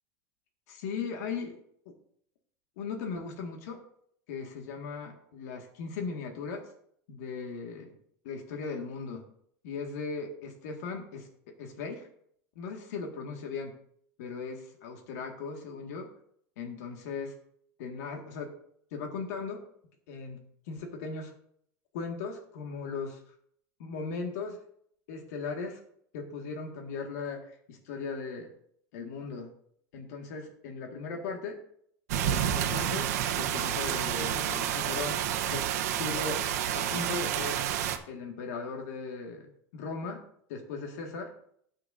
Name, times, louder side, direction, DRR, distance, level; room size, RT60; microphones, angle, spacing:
voice 1, 0.7-1.6 1.9-2.0 2.8-3.8 4.3-6.7 7.1-7.9 8.2-9.2 9.6-11.3 11.6-12.1 12.6-13.7 14.2-16.1 16.6-17.3 17.8-18.5 18.9-19.6 20.1-20.4 20.7-21.3 21.9-23.3 23.8-24.6 25.1-25.8 26.1-28.5 28.9-29.5 29.9-31.6 32.2-35.2 35.5-35.7 36.0-36.4 36.7-37.6 38.1-40.2 40.5-41.3, left 4 dB, 85° left, 2 dB, 1.7 m, -38 dB
sound 1, 32.1-38.0, right 10 dB, 90° right, 1.0 m, -29 dB
18.5 x 6.4 x 2.6 m, 0.67 s
supercardioid pair, 135°, 8 cm